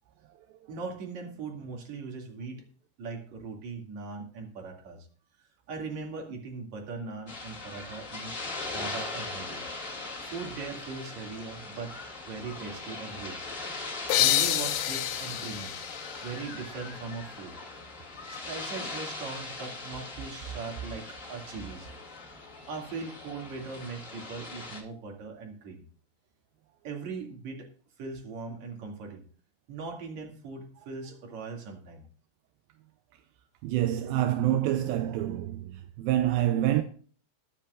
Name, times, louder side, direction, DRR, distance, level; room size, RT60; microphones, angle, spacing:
voice 1, 0.7-2.6 3.0-5.1 5.7-8.4 8.7-9.6 10.2-12.0 12.3-13.5 14.2-15.8 16.2-17.6 18.3-21.9 22.7-25.8 26.8-27.7 28.0-29.2 29.7-32.0, right 4 dB, 50° right, 3.3 m, -39 dB
sound 1, 7.3-24.8, left 3 dB, 25° left, 1.9 m, -40 dB
sound 2, 14.1-17.5, left 15 dB, 85° left, 2.7 m, -29 dB
voice 2, 33.6-36.8, right 12 dB, 80° right, 2.2 m, -27 dB
21.0 x 7.6 x 2.5 m
omnidirectional pair, 4.7 m